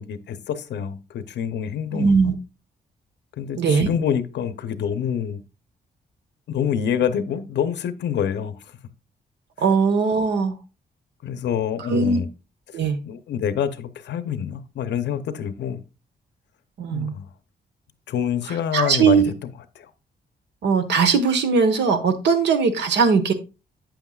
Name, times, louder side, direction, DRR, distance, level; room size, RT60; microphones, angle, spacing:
voice 1, 0.0-2.2 3.4-5.4 6.5-8.8 11.2-12.3 13.0-15.8 16.9-17.3 18.1-19.5 19.8-19.9, left 8 dB, 85° left, 12 dB, 0.8 m, -26 dB
voice 2, 1.9-2.4 3.6-3.9 9.6-10.6 11.9-12.2 12.7-13.0 16.8-17.1 18.7-19.3 20.6-23.3, right 5 dB, 85° right, 8 dB, 1.2 m, -19 dB
8.8 x 7.9 x 2.4 m, 0.30 s
cardioid pair, 110°, 18 cm